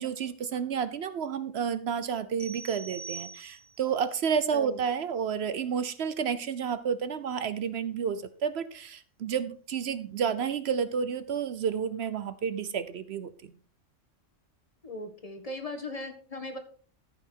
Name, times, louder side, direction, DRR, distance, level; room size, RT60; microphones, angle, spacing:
voice 1, 0.0-13.5, right 7 dB, 60° right, 13 dB, 0.9 m, -31 dB
sound 1, 2.4-3.9, right 4 dB, 5° left, 1.3 m, -43 dB
voice 2, 14.8-16.6, left 2 dB, 30° left, 7 dB, 1.5 m, -38 dB
13.5 x 5.8 x 4.5 m, 0.43 s
omnidirectional pair, 1.3 m